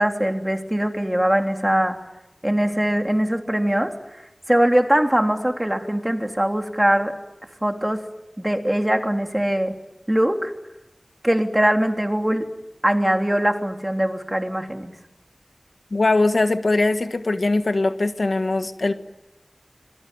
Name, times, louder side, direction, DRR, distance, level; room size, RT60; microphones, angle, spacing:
voice 1, 0.0-2.0 2.4-3.9 4.5-7.1 7.6-8.0 8.4-9.7 10.1-10.5 11.2-12.5 12.8-14.9, right 1 dB, 15° right, 4 dB, 3.3 m, -21 dB
voice 2, 15.9-18.9, left 2 dB, 85° left, 8 dB, 1.4 m, -21 dB
26.0 x 22.0 x 9.2 m, 0.93 s
wide cardioid pair, 40°, 0 cm